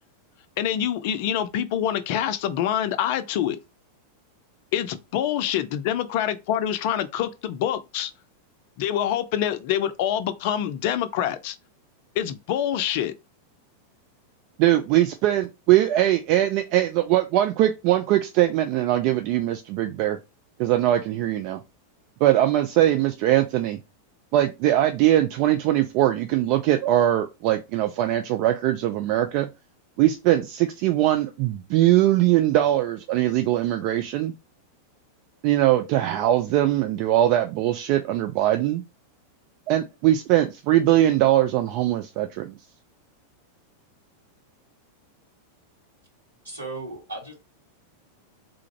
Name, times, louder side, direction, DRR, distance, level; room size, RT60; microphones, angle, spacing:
voice 1, 0.6-3.6 4.7-8.1 8.8-11.6 12.2-13.1, left 10 dB, 50° left, 0.4 m, -26 dB
voice 2, 14.6-20.2 20.6-21.6 22.2-23.8 24.3-29.5 30.0-34.3 35.4-38.8 39.7-42.5, right 13 dB, 45° right, 0.4 m, -21 dB
voice 3, 46.4-47.3, right 2 dB, 75° right, 2.2 m, -35 dB
3.7 x 2.5 x 4.3 m
figure-of-eight pair, 90°, 0 cm